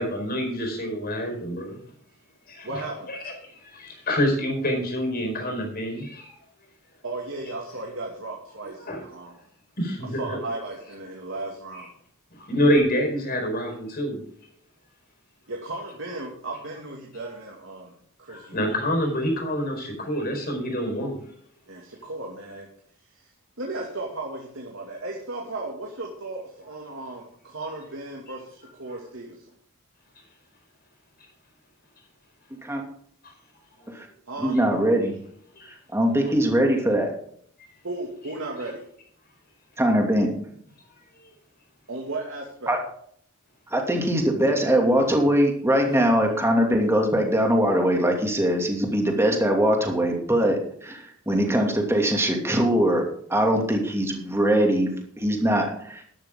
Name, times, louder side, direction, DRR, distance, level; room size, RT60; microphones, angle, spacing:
voice 1, 0.0-1.8 2.5-2.8 3.1-3.2 3.6-6.3 8.9-9.0 9.8-10.2 12.3-14.2 18.3-21.2 35.5-35.7, equal, 45° left, 3 dB, 4.7 m, -26 dB
voice 2, 2.6-3.1 7.0-9.4 10.2-11.9 13.3-13.4 15.5-18.7 21.7-22.7 23.0-23.3 23.6-29.5 34.3-34.6 37.8-38.8 41.9-42.8, right 2 dB, 65° right, -1 dB, 2.3 m, -35 dB
voice 3, 34.4-35.2 35.9-37.1 39.8-40.4 42.7-42.8 43.7-56.0, equal, 10° right, 2 dB, 2.5 m, -22 dB
12.0 x 12.0 x 3.8 m, 0.62 s
head